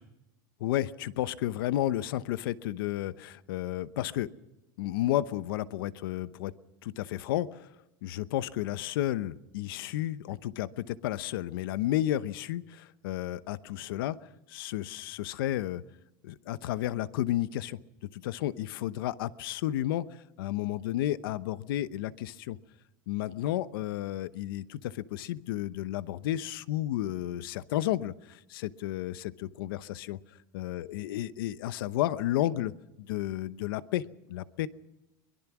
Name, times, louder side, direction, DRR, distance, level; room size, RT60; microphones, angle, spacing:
voice 1, 0.6-4.3 4.8-6.5 6.8-7.7 8.0-14.2 14.5-15.8 16.2-17.8 18.1-22.6 23.1-30.2 30.5-34.0 34.3-34.7, left 13 dB, 85° left, 15 dB, 0.9 m, -32 dB
23.0 x 21.5 x 6.1 m, 0.95 s
supercardioid pair, 145°, 11 cm